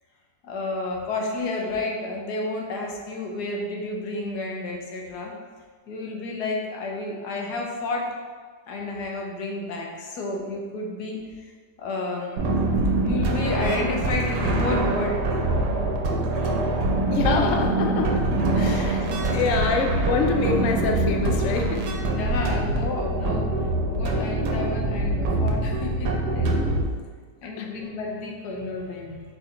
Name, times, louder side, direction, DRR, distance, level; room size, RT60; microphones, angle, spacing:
voice 1, 0.4-5.3 5.9-8.1 8.7-11.2 11.8-12.5 13.0-15.2 18.6-18.9 22.0-23.5 23.9-26.6 27.4-29.2, left 2 dB, 85° left, 0 dB, 1.3 m, -31 dB
sound 1, 12.4-26.8, right 2 dB, 85° right, 1.2 m, -24 dB
voice 2, 17.1-18.2 18.6-19.1 19.3-21.8 27.6-27.7, left 4 dB, 70° left, 3 dB, 0.8 m, -25 dB
4.9 x 4.3 x 2.5 m, 1.6 s
omnidirectional pair, 1.7 m